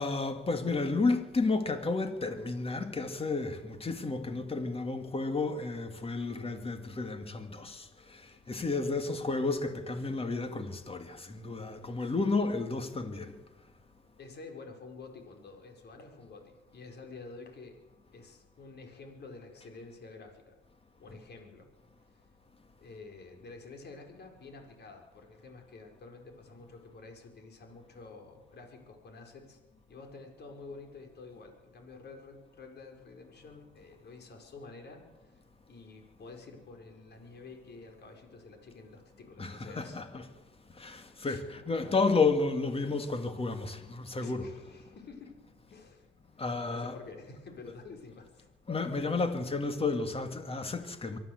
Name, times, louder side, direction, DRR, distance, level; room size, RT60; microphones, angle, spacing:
voice 1, 0.0-13.3 21.1-21.2 39.4-40.3 40.7-44.6 46.4-47.0 48.7-51.2, left 3 dB, 30° left, 2.6 m, -32 dB
voice 2, 8.5-9.2 14.2-17.8 18.1-20.6 21.0-21.7 22.0-22.3 22.8-29.6 29.9-35.3 35.7-40.0 41.2-41.4 44.2-45.4 45.7-46.1 46.3-48.5, left 3 dB, 55° left, 5.2 m, -49 dB
23.5 x 13.5 x 8.1 m
cardioid pair, 90°, 20 cm